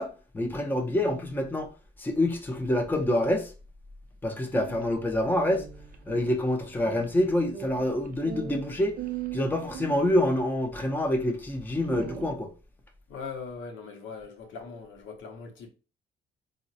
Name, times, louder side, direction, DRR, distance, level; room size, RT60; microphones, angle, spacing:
voice 1, 0.0-1.7 2.0-3.5 4.2-5.6 6.1-9.0 9.3-12.5, left 1 dB, 10° left, 0.5 m, -27 dB
sound 1, 4.4-10.3 11.1-11.2 11.6-12.3, right 9 dB, 45° right, 0.4 m, -40 dB
voice 2, 13.1-15.7, left 5 dB, 75° left, 0.7 m, -40 dB
3.6 x 2.0 x 2.6 m
cardioid pair, 90°, 20 cm